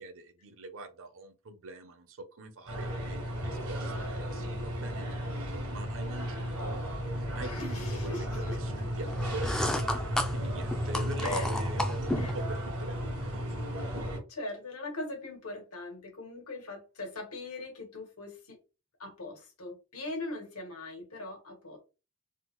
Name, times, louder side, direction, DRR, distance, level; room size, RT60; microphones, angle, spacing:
voice 1, 0.0-6.8 7.2-9.5 10.3-14.0, right 2 dB, 65° right, 8 dB, 0.6 m, -43 dB
sound 1, 2.7-14.2, equal, 85° right, 1.3 m, -34 dB
voice 2, 7.3-8.6 11.2-11.5 12.2-12.3 14.3-18.6 19.0-21.8, left 2 dB, 80° left, 1 dB, 1.3 m, -40 dB
sound 2, 9.1-12.4, left 1 dB, 5° left, 0.3 m, -33 dB
3.5 x 2.0 x 3.0 m, 0.31 s
head